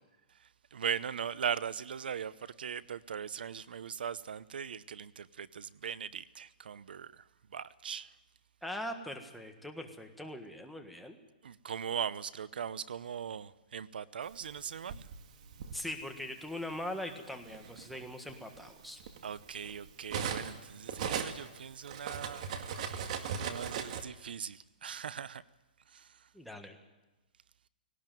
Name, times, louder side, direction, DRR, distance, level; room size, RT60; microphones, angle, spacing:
voice 1, 0.3-8.2 11.4-15.1 19.2-22.5 23.4-25.4 25.9-26.3, right 7 dB, 80° right, 18 dB, 0.7 m, -40 dB
voice 2, 8.6-11.2 15.7-19.0 26.3-26.8, left 1 dB, ahead, 3 dB, 1.5 m, -41 dB
Cutlery silverware, 14.5-15.8 16.7-16.9 17.3-20.6 20.9-24.0, right 7 dB, 45° right, 2.0 m, -38 dB
18.5 x 18.0 x 9.2 m, 1.1 s
hypercardioid pair, 165°, 5 cm